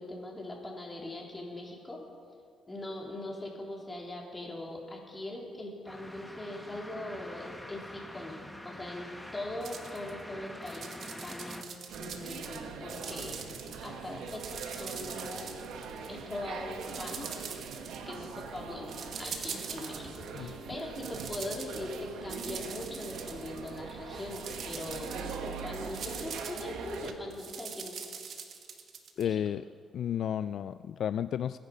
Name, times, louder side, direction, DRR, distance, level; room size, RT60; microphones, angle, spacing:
voice 1, 0.0-2.0 2.7-8.4 8.6-11.7 12.0-13.4 13.8-15.5 16.1-17.3 18.1-18.9 19.2-27.9 29.2-29.4, left 1 dB, 20° left, -1 dB, 3.7 m, -41 dB
sound 1, 5.9-11.6, equal, 5° left, 1.3 m, -46 dB
sound 2, 9.6-10.1 10.5-12.6 12.9-13.9 14.2-16.3 16.8-18.4 18.9-20.5 20.8-23.9 24.2-29.2, right 6 dB, 65° right, 1.7 m, -43 dB
sound 3, 11.9-27.1, right 5 dB, 85° right, 1.3 m, -42 dB
voice 2, 29.2-29.6 29.9-31.6, left 9 dB, 65° left, 13 dB, 0.3 m, -32 dB
22.0 x 10.0 x 5.5 m, 2.2 s
cardioid pair, 90°, 0 cm